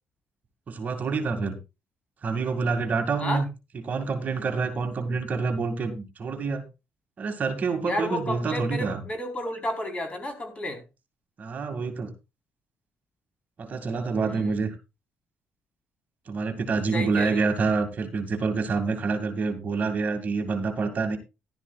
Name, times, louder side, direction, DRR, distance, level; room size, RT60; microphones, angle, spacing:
voice 1, 0.7-1.6 2.2-3.4 3.8-6.6 7.2-9.0 11.4-12.1 13.6-14.8 16.3-21.2, right 4 dB, 40° right, 5 dB, 2.2 m, -27 dB
voice 2, 7.8-10.8 14.2-14.5 16.9-17.4, left 1 dB, 30° left, 5 dB, 4.2 m, -31 dB
14.5 x 12.0 x 2.4 m, 0.26 s
cardioid pair, 130°, 4 cm